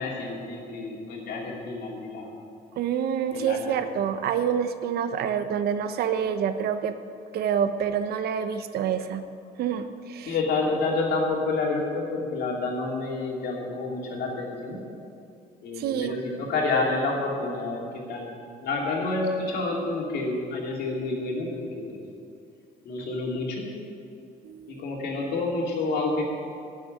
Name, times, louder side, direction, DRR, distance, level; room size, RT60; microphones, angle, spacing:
voice 1, 0.0-2.3 3.3-3.8 10.3-14.8 15.6-18.3 18.6-22.0 22.8-23.7 24.7-26.2, left 3 dB, 70° left, -2 dB, 3.1 m, -29 dB
voice 2, 2.8-7.0 7.3-9.2 9.6-10.3 15.8-16.2 24.4-24.8, right 8 dB, 70° right, 10 dB, 0.9 m, -27 dB
12.0 x 7.7 x 9.2 m, 2.4 s
cardioid pair, 110°, 17 cm